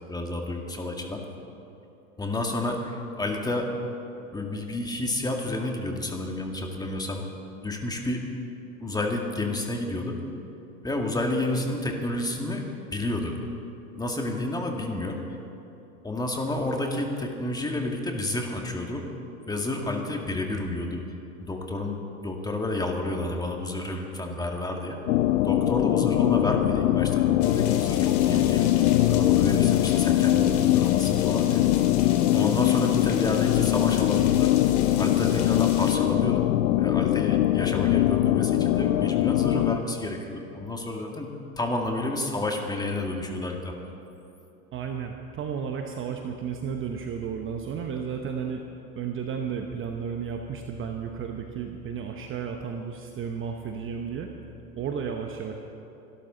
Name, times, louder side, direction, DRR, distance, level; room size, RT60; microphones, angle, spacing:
voice 1, 0.1-1.2 2.2-3.7 4.3-7.3 7.5-8.3 8.8-10.2 10.8-12.6 12.9-13.4 14.0-15.2 16.0-19.1 19.5-21.0 21.4-25.0 25.4-28.7 29.1-31.6 32.3-34.5 35.0-36.4 36.8-43.7, left 2 dB, 10° left, 2 dB, 1.9 m, -30 dB
sound 1, 25.1-39.8, left 14 dB, 65° left, 0.7 m, -22 dB
sound 2, 27.4-36.0, left 8 dB, 50° left, 2.2 m, -40 dB
voice 2, 44.7-48.6 48.9-54.3 54.8-55.5, right 7 dB, 25° right, 4 dB, 1.0 m, -33 dB
24.5 x 12.5 x 3.9 m, 2.9 s
hypercardioid pair, 105°, 46 cm